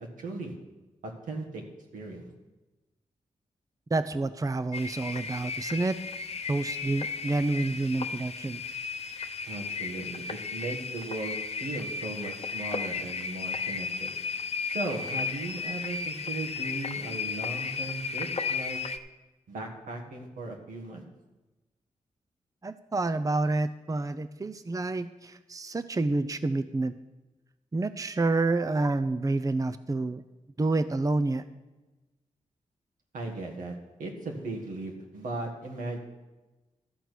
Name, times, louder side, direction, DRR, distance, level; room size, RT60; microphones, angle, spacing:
voice 1, 0.2-0.5 1.0-1.6 1.9-2.3 9.5-14.1 14.7-18.8 19.5-21.0 33.1-36.0, right 2 dB, 85° right, 1 dB, 1.8 m, -37 dB
voice 2, 3.9-6.0 6.5-8.6 22.6-26.9 27.7-30.2 30.6-31.4, right 2 dB, 25° right, 12 dB, 0.6 m, -28 dB
sound 1, 4.7-19.0, left 5 dB, 50° left, 0.8 m, -34 dB
13.0 x 4.5 x 8.2 m, 1.1 s
supercardioid pair, 40°, 13 cm